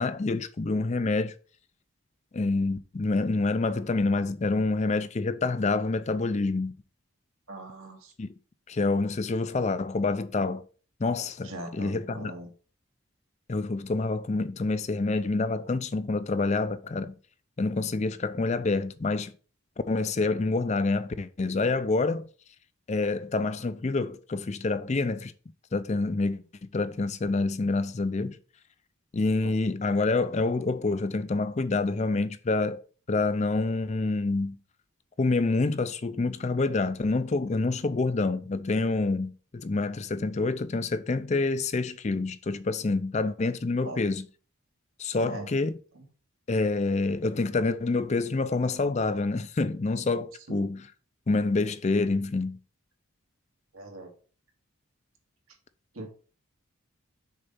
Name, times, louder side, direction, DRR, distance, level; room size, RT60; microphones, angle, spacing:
voice 1, 0.0-1.3 2.3-6.7 8.2-8.3 8.7-10.6 11.0-12.3 13.5-17.2 17.6-19.3 19.9-22.3 22.9-25.3 25.7-28.4 29.1-32.8 33.1-34.6 35.2-44.3 45.0-45.7 46.5-50.9 51.3-52.6, left 3 dB, 30° left, 0.4 m, -27 dB
voice 2, 7.5-8.1 11.4-12.5 29.4-29.5 43.8-44.0 45.2-45.5 45.9-46.0 50.5-50.7 53.7-54.1 55.9-56.1, right 1 dB, 75° right, 2.3 m, -40 dB
6.5 x 4.0 x 5.6 m
head